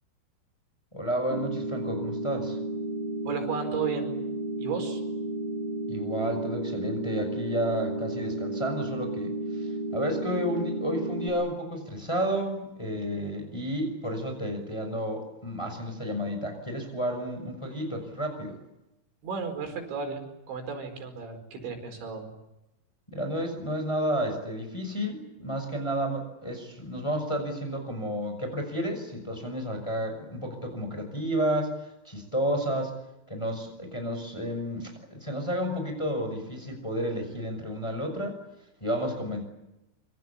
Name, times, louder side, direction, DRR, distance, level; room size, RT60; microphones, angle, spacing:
voice 1, 0.9-2.6 5.9-18.6 23.1-31.7 32.0-32.9 33.3-38.4 38.8-39.4, equal, 5° left, 5 dB, 5.5 m, -31 dB
sound 1, 1.3-11.3, right 2 dB, 10° right, 5.9 m, -32 dB
voice 2, 3.3-4.1 4.6-5.0 19.2-22.3, right 5 dB, 80° right, 5 dB, 7.0 m, -34 dB
26.5 x 26.0 x 8.6 m, 0.94 s
omnidirectional pair, 5.3 m